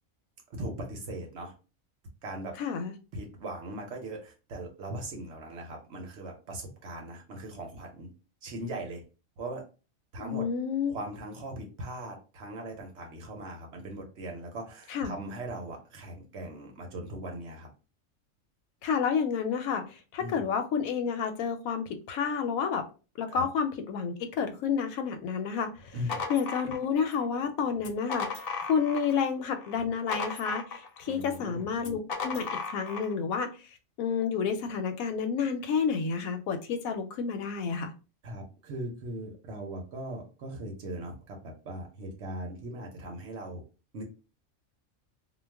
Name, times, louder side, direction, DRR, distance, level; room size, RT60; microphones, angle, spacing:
voice 1, 0.6-1.5 2.2-2.6 3.1-8.1 8.4-9.0 9.4-9.6 10.1-10.5 10.9-17.7 20.2-20.4 23.3-23.5 25.9-26.3 31.1-31.6 38.2-43.6 43.9-44.0, right 1 dB, 60° right, 0.9 m, -39 dB
voice 2, 2.6-2.9 10.2-11.0 14.9-15.1 18.8-22.8 23.2-25.9 26.3-33.5 34.0-37.9, left 6 dB, 85° left, 1.0 m, -30 dB
sound 1, 25.8-27.2 27.8-29.2 29.6-31.1 31.8-33.1, left 5 dB, 60° left, 0.6 m, -36 dB
2.3 x 2.3 x 3.3 m
omnidirectional pair, 1.4 m